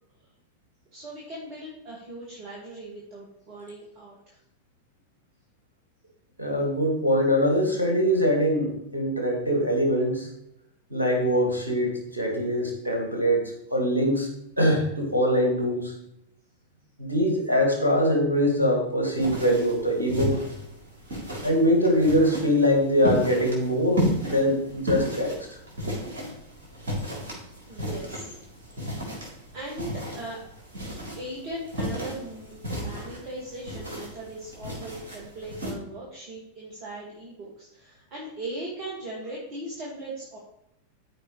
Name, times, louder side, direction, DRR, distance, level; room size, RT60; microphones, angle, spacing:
voice 1, 0.9-4.4 27.7-28.3 29.5-30.4 31.2-40.4, right 1 dB, 40° right, -4 dB, 2.0 m, -39 dB
voice 2, 6.4-10.3 10.9-14.3 14.6-16.0 17.0-20.4 21.4-25.3, equal, 85° right, 1 dB, 2.0 m, -23 dB
sound 1, 19.1-35.7, equal, 65° right, 3.6 m, -34 dB
13.0 x 5.0 x 3.3 m, 0.79 s
figure-of-eight pair, 90°, 0 cm